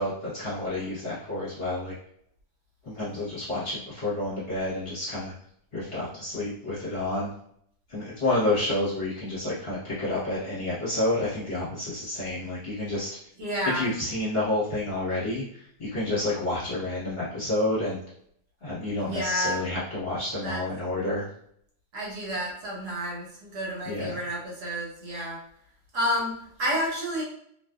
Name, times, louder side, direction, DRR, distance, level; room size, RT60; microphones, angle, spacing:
voice 1, 0.0-1.9 2.8-5.3 5.7-7.3 7.9-13.1 13.6-18.0 18.6-21.2 23.8-24.2, left 2 dB, 40° left, -10 dB, 1.1 m, -29 dB
voice 2, 13.4-13.9 19.0-19.6 20.4-20.6 21.9-23.3 23.5-25.4 25.9-27.2, equal, 70° right, -3 dB, 1.3 m, -30 dB
2.9 x 2.4 x 2.2 m, 0.68 s
omnidirectional pair, 1.9 m